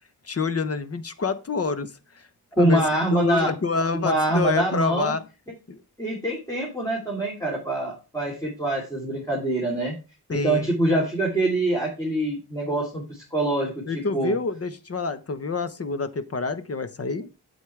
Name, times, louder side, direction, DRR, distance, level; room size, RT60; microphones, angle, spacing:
voice 1, 0.2-2.3 2.6-2.9 3.1-5.2 5.7-5.8 10.3-10.7 13.9-17.3, left 4 dB, 40° left, 13 dB, 1.1 m, -27 dB
voice 2, 2.6-3.5 3.9-5.1 6.0-9.9 10.3-13.7 14.1-14.3, right 2 dB, 10° left, -3 dB, 3.3 m, -24 dB
8.3 x 8.3 x 3.4 m, 0.30 s
wide cardioid pair, 115°, 39 cm